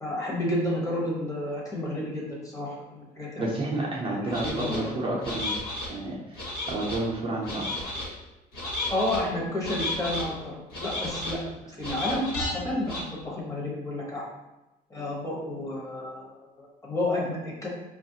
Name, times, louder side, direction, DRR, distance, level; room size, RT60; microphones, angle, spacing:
voice 1, 0.0-3.5 4.2-4.8 8.9-11.4 11.8-14.2 14.9-17.7, left 1 dB, 20° left, -4 dB, 1.0 m, -31 dB
voice 2, 3.4-5.5 5.9-6.4 6.7-7.9, right 2 dB, 30° right, -4 dB, 0.6 m, -30 dB
sound 1, 4.3-4.8 5.2-5.9 6.3-7.0 7.4-8.1 8.5-9.2 9.6-10.2 10.7-11.4 11.8-12.5 12.9-13.0, left 2 dB, 70° left, 1.3 m, -33 dB
3.3 x 2.4 x 2.7 m, 1.0 s
cardioid pair, 110°, 17 cm